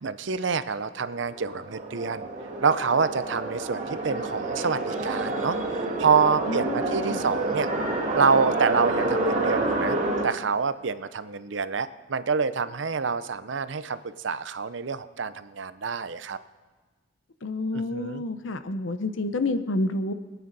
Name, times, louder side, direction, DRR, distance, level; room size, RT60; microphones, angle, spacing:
voice 1, 0.0-2.3 2.6-7.7 8.1-10.0 10.2-14.0 14.2-16.4 17.7-18.2, right 5 dB, 70° right, 13 dB, 0.6 m, -27 dB
sound 1, 1.0-10.3, right 2 dB, 40° right, 2.3 m, -28 dB
voice 2, 6.5-7.2 17.4-20.1, left 2 dB, 75° left, 10 dB, 0.7 m, -29 dB
23.5 x 9.3 x 4.1 m, 1.4 s
head